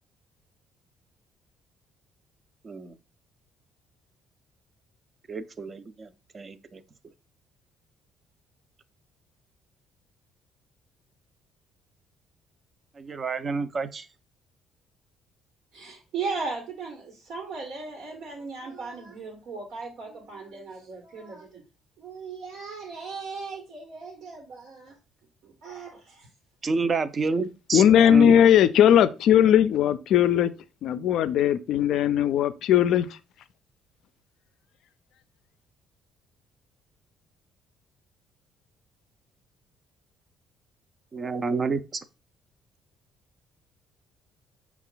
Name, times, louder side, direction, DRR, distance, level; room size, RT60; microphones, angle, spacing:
voice 1, 5.3-6.1 6.3-6.8 13.0-14.1 26.6-28.4 41.1-41.8, right 4 dB, 35° right, 0.5 m, -29 dB
voice 2, 15.7-21.6 22.0-25.0 25.4-26.3, right 4 dB, 75° right, 1.3 m, -37 dB
voice 3, 27.7-30.5 30.8-33.1, left 10 dB, 70° left, 0.3 m, -19 dB
5.5 x 2.4 x 3.8 m
cardioid pair, 90°, 0 cm